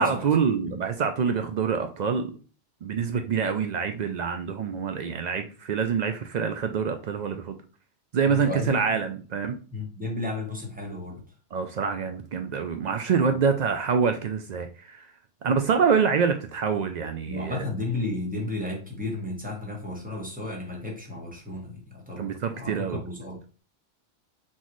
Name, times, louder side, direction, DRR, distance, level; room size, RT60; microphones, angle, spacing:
voice 1, 0.0-2.3 2.8-7.6 8.1-9.6 11.5-15.1 15.4-17.6 22.2-23.0, right 6 dB, 85° right, 6 dB, 0.3 m, -26 dB
voice 2, 8.3-9.0 9.7-11.3 13.3-13.4 17.3-23.6, left 2 dB, 5° right, 0 dB, 1.1 m, -33 dB
4.0 x 3.9 x 3.0 m, 0.37 s
omnidirectional pair, 1.3 m